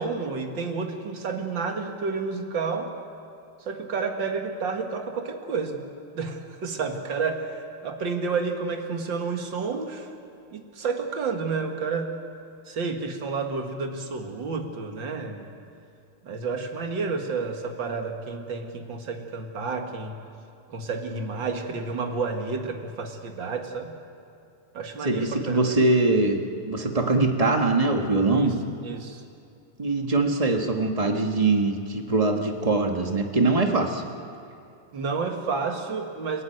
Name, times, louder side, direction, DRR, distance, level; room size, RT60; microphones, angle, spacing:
voice 1, 0.0-2.9 3.7-5.8 6.1-10.1 10.5-12.1 12.7-15.5 16.2-20.1 20.7-23.9 24.7-25.8 28.3-28.5 28.8-29.2 34.9-36.4, right 4 dB, 45° right, 3 dB, 2.3 m, -30 dB
voice 2, 25.0-26.4 26.6-28.5 29.8-34.0, right 3 dB, 25° right, 3 dB, 0.8 m, -22 dB
30.0 x 15.0 x 9.3 m, 2.6 s
omnidirectional pair, 3.3 m